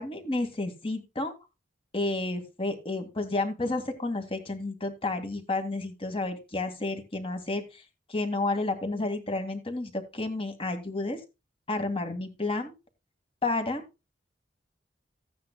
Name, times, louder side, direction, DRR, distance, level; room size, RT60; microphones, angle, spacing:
voice 1, 0.0-1.3 1.9-7.8 8.1-11.2 11.7-12.7 13.4-13.8, left 2 dB, 30° left, 6 dB, 2.0 m, -31 dB
15.5 x 9.4 x 2.2 m, 0.26 s
head